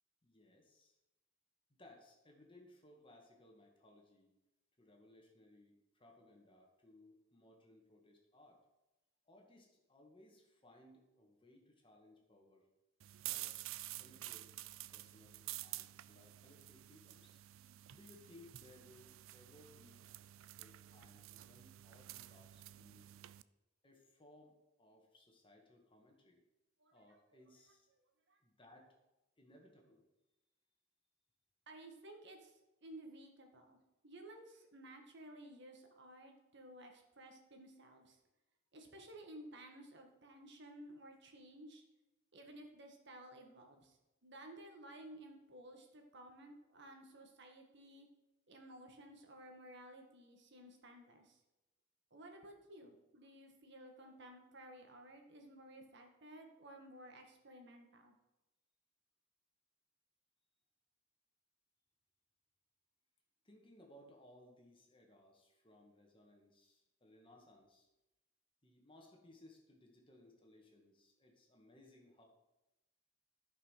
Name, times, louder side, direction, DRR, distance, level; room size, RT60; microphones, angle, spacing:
voice 1, 0.2-1.0 1.7-4.3 4.8-8.6 9.2-12.7 13.2-13.6 13.8-14.6 14.9-17.4 17.9-20.0 20.6-23.1 23.8-26.4 26.9-27.9 28.4-29.0 29.4-30.0 63.4-67.9 68.6-72.3, left 1 dB, 25° left, 1 dB, 2.0 m, -63 dB
sound 1, 13.0-23.4, right 15 dB, 80° right, 0.4 m, -50 dB
voice 2, 31.7-33.8 34.0-38.2 38.7-41.8 42.3-48.1 48.5-51.4 52.1-58.1, right 1 dB, 60° right, 3 dB, 1.7 m, -55 dB
13.5 x 5.7 x 5.8 m, 0.98 s
head